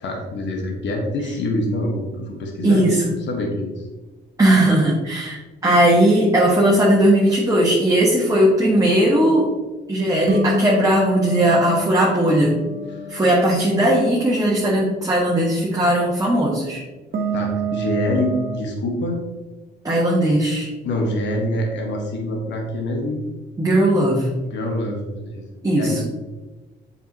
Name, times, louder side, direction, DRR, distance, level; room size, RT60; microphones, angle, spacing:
voice 1, 0.0-2.9 3.3-3.7 12.9-13.0 17.3-19.2 20.8-23.2 24.4-26.0, left 1 dB, 65° left, 1 dB, 1.4 m, -25 dB
voice 2, 2.6-3.1 4.4-9.5 9.9-12.6 13.1-16.8 19.8-20.7 23.6-24.3 25.6-26.0, right 1 dB, 15° right, -4 dB, 1.5 m, -18 dB
sound 1, 10.3-14.4 17.1-18.6, right 1 dB, 50° right, 1.2 m, -27 dB
7.2 x 5.7 x 2.9 m, 1.2 s
cardioid pair, 90°, 20 cm